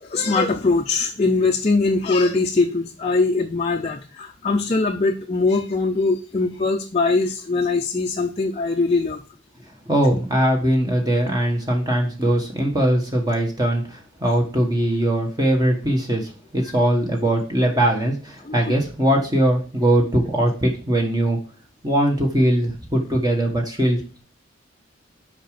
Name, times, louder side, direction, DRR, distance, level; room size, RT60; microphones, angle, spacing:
voice 1, 0.0-9.2 18.4-18.7, left 3 dB, 30° left, 2 dB, 0.6 m, -21 dB
voice 2, 9.9-21.4 21.8-24.2, right 1 dB, 20° right, 1 dB, 1.4 m, -21 dB
6.5 x 5.1 x 5.1 m, 0.36 s
head